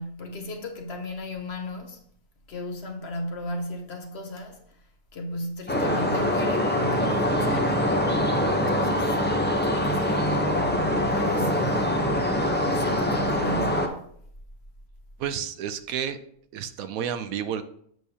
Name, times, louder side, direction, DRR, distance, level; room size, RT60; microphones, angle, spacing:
voice 1, 0.0-2.0 2.5-4.6 5.1-7.9 8.7-9.2 9.6-12.0 12.6-14.0, left 1 dB, 50° left, 1.0 m, -36 dB
sound 1, 5.7-13.9, equal, 15° left, 0.4 m, -24 dB
voice 2, 15.2-16.2 16.5-17.6, right 8 dB, 75° right, 1.0 m, -30 dB
7.7 x 6.6 x 2.8 m
omnidirectional pair, 1.5 m